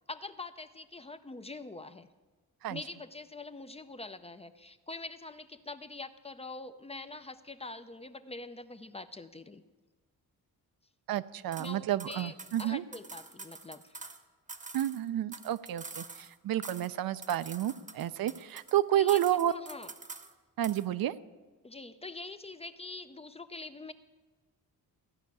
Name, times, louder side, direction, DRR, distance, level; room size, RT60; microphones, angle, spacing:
voice 1, 0.1-2.1 2.7-9.6 11.6-12.3 12.6-14.0 18.9-19.2 19.5-19.9 21.6-23.9, left 3 dB, 20° left, 11 dB, 0.4 m, -44 dB
voice 2, 11.1-12.8 14.7-19.5 20.6-21.2, right 12 dB, 75° right, 14 dB, 0.6 m, -30 dB
sound 1, 11.5-11.7 12.0-14.2 14.5-16.3 16.6-17.0 17.2-18.8 19.1-20.3 20.6-20.9, right 3 dB, 20° right, 0.9 m, -46 dB
15.0 x 5.8 x 9.5 m, 1.3 s
wide cardioid pair, 125°, 35 cm